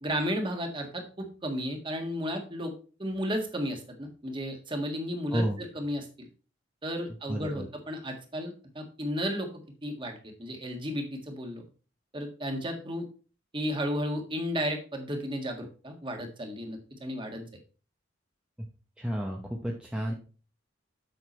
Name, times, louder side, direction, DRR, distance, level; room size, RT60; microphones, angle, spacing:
voice 1, 0.0-2.7 3.0-6.1 6.8-9.5 9.8-11.6 12.1-13.1 13.5-17.5, equal, 25° right, 3 dB, 1.7 m, -33 dB
voice 2, 5.3-5.6 7.3-7.7 19.0-20.1, equal, 5° right, -1 dB, 0.9 m, -31 dB
7.9 x 5.9 x 4.3 m, 0.36 s
head